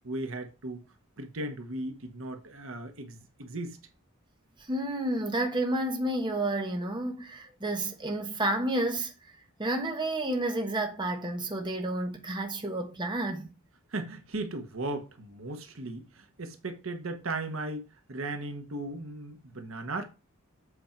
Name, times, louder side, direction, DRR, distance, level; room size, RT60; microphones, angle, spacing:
voice 1, 0.0-0.8 1.2-3.8 13.9-17.8 18.1-20.0, right 2 dB, 65° right, 1.2 m, -36 dB
voice 2, 4.6-9.1 9.6-13.5, right 1 dB, 20° right, 1.2 m, -30 dB
8.2 x 4.4 x 4.5 m
head